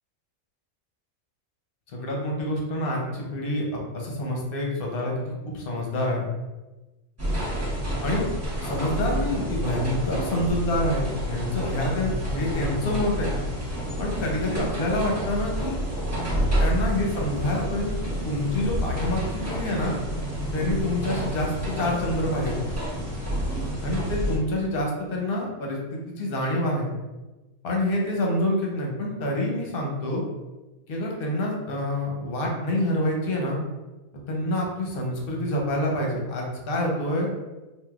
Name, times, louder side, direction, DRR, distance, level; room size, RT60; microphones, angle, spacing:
voice 1, 1.9-6.3 8.0-8.3 8.6-13.3 14.0-15.8 16.6-18.0 18.2-19.9 20.5-21.5 21.8-22.7 23.8-26.9 27.6-30.2 30.9-33.6 34.3-37.3, left 1 dB, 50° left, -1 dB, 0.8 m, -27 dB
sound 1, 7.2-24.4, equal, 15° right, 0.7 m, -29 dB
3.6 x 2.6 x 2.3 m, 1.1 s
omnidirectional pair, 1.4 m